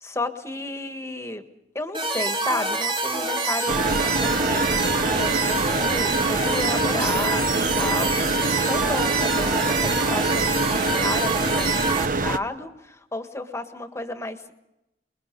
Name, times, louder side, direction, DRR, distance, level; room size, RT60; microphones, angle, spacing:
voice 1, 0.0-1.5 1.7-8.1 8.5-14.5, left 2 dB, 15° left, 7 dB, 1.6 m, -32 dB
sound 1, 1.9-12.1, right 3 dB, 30° right, 2.2 m, -26 dB
sound 2, 3.7-12.4, right 3 dB, 50° right, 0.8 m, -25 dB
26.5 x 21.5 x 5.4 m, 0.91 s
head